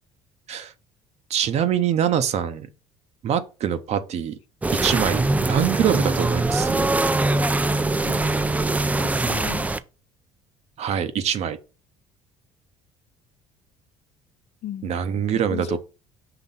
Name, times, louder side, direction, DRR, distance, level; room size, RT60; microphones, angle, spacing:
voice 1, 1.3-2.7 3.2-4.4 4.8-6.9 10.8-11.6 14.8-15.8, right 9 dB, 55° right, 0.8 m, -24 dB
sound 1, 4.6-9.8, right 2 dB, 10° right, 0.4 m, -22 dB
voice 2, 8.0-8.6 9.0-9.7 14.6-15.8, left 12 dB, 55° left, 0.5 m, -36 dB
5.8 x 3.0 x 5.5 m
supercardioid pair, 80°, 13 cm